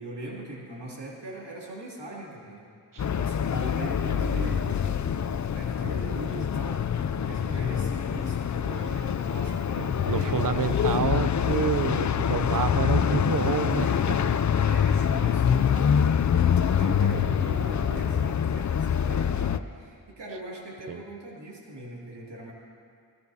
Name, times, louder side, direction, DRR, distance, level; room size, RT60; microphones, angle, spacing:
voice 1, 0.0-2.7 2.9-5.0 5.5-6.9 7.2-10.8 14.6-22.5, right 1 dB, 80° right, -4 dB, 2.8 m, -40 dB
sound 1, 3.0-19.6, left 8 dB, 45° left, 0.4 m, -25 dB
voice 2, 9.8-14.2 20.9-21.0, right 7 dB, 50° right, 11 dB, 0.7 m, -29 dB
21.0 x 18.0 x 2.8 m, 2.2 s
wide cardioid pair, 85°, 41 cm